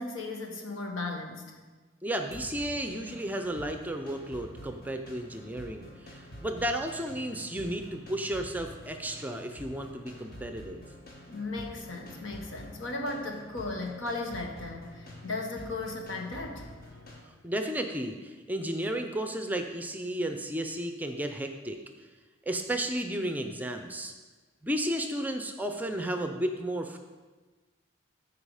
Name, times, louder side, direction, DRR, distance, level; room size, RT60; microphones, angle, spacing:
voice 1, 0.0-1.6 11.3-16.7, left 2 dB, 85° left, 1 dB, 1.5 m, -36 dB
voice 2, 2.0-10.8 17.4-21.8 22.5-24.1 24.6-27.0, right 1 dB, 10° right, 5 dB, 0.5 m, -33 dB
sound 1, 2.3-17.2, left 1 dB, 45° left, 1.5 m, -48 dB
14.5 x 4.8 x 4.9 m, 1.3 s
head